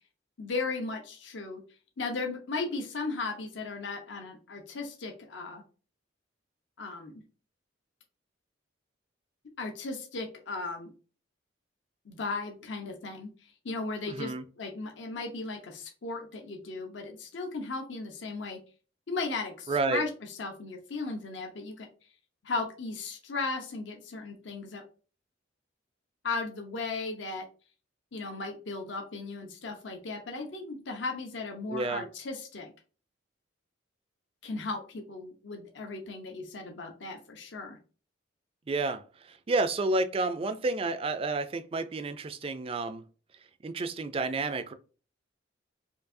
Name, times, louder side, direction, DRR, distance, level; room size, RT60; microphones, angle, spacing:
voice 1, 0.4-1.6 2.0-5.6 6.8-7.2 9.6-10.9 12.0-18.6 19.1-20.1 20.4-21.9 22.4-24.8 26.2-27.4 28.1-32.7 34.4-37.8, left 3 dB, 75° left, 0.8 m, -36 dB
voice 2, 14.1-14.4 19.7-20.0 31.7-32.1 38.7-43.0 43.6-44.7, right 3 dB, 30° right, 0.3 m, -30 dB
4.5 x 2.7 x 2.6 m
head